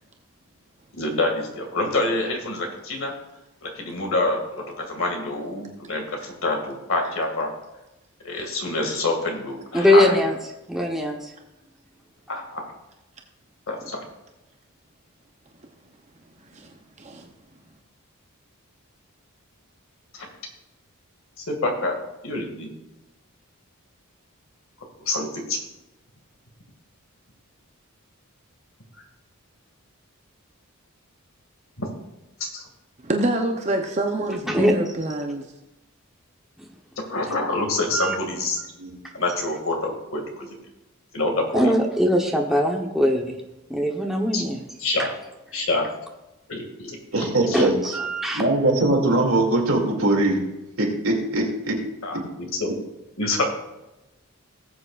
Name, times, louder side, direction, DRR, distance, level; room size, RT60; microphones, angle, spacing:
voice 1, 1.0-3.1 3.6-7.5 8.2-10.1 12.3-12.6 13.7-14.0 20.1-20.3 21.4-21.9 22.2-22.7 25.1-25.6 31.8-31.9 32.4-32.6 37.1-38.6 39.1-40.6 41.1-41.7 44.3-44.4 44.8-45.1 45.5-45.9 46.5-47.7 52.0-52.7 53.2-53.4, left 2 dB, 65° left, 2 dB, 2.2 m, -26 dB
voice 2, 9.7-10.4 10.7-11.3 34.5-34.7 36.6-36.7 37.9-38.2 41.5-43.4 43.7-44.6 45.0-45.1 47.4-48.5, left 1 dB, ahead, 0 dB, 1.0 m, -21 dB
voice 3, 16.5-17.3 33.0-35.5, right 1 dB, 30° right, 3 dB, 0.8 m, -26 dB
voice 4, 47.1-47.7 48.4-50.4 50.8-51.8, right 2 dB, 65° right, -1 dB, 2.6 m, -21 dB
19.0 x 7.8 x 2.5 m, 0.97 s
head